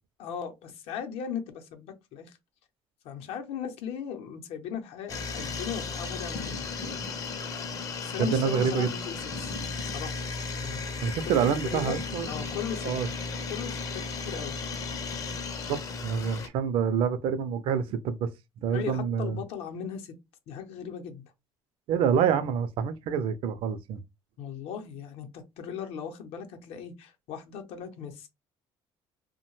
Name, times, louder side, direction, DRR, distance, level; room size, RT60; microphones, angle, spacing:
voice 1, 0.2-2.3 3.0-6.6 8.0-9.5 9.8-10.2 10.6-10.8 11.6-12.0 12.3-12.9 13.5-14.5 18.7-20.1 20.5-21.2 24.4-28.3, left 7 dB, 70° left, 0.6 m, -37 dB
sound 1, 5.1-16.5, left 4 dB, 35° left, 0.5 m, -35 dB
voice 2, 8.2-8.9 11.0-12.3 12.8-13.1 15.7-18.3 18.6-19.4 21.9-24.0, right 7 dB, 60° right, 0.4 m, -27 dB
2.7 x 2.1 x 3.0 m
cardioid pair, 155°, 10 cm